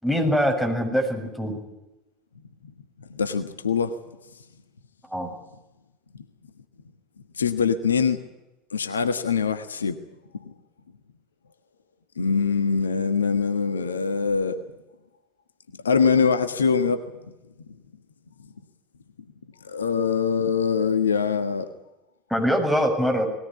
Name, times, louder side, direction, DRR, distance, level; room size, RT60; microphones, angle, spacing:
voice 1, 0.0-1.6 5.1-5.3 22.3-23.2, equal, ahead, 2 dB, 7.2 m, -23 dB
voice 2, 3.1-3.9 7.3-8.2 8.7-10.0 12.2-14.6 15.8-17.0 19.6-21.7, left 6 dB, 80° left, 9 dB, 1.4 m, -23 dB
20.5 x 18.5 x 9.7 m, 0.99 s
figure-of-eight pair, 75°, 0 cm